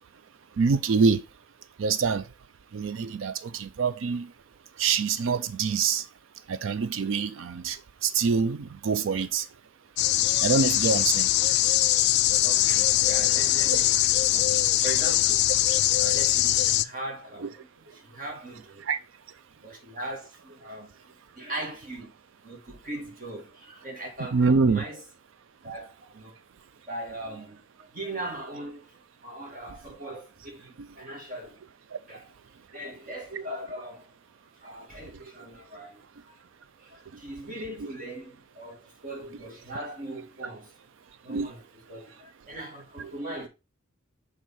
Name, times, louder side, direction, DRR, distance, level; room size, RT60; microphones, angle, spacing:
voice 1, 0.6-1.2 1.8-2.3 2.7-4.3 4.8-6.1 6.5-9.5 10.4-11.3 17.4-17.5 18.8-19.0 24.3-24.8 30.8-30.9 31.9-32.0 37.8-37.9 41.3-41.5 43.0-43.1, right 5 dB, 65° right, 0.4 m, -25 dB
sound 1, 10.0-16.8, left 14 dB, 55° left, 0.3 m, -22 dB
voice 2, 12.4-15.5 16.0-18.8 19.6-20.9 21.4-22.1 22.4-25.0 25.6-26.4 26.9-28.9 29.2-31.6 32.1-32.2 32.7-34.1 34.6-36.0 36.8-40.7 41.2-41.6 41.9-43.5, right 1 dB, 40° right, 2.1 m, -39 dB
6.3 x 3.7 x 4.1 m
head